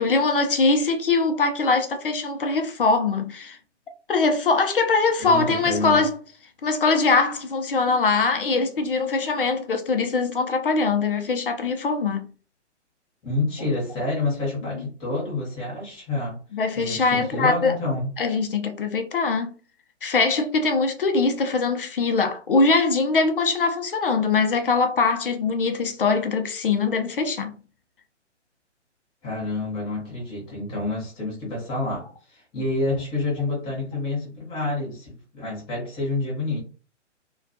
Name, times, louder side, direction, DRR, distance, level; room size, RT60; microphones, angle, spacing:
voice 1, 0.0-3.6 4.1-6.2 6.6-12.3 16.5-17.7 18.2-19.6 20.0-27.6, left 4 dB, 50° left, 0.5 m, -22 dB
voice 2, 5.2-6.0 13.2-16.4 16.7-18.1 29.2-36.6, left 2 dB, 10° left, 0.9 m, -28 dB
2.3 x 2.2 x 2.6 m
figure-of-eight pair, 130°, 36 cm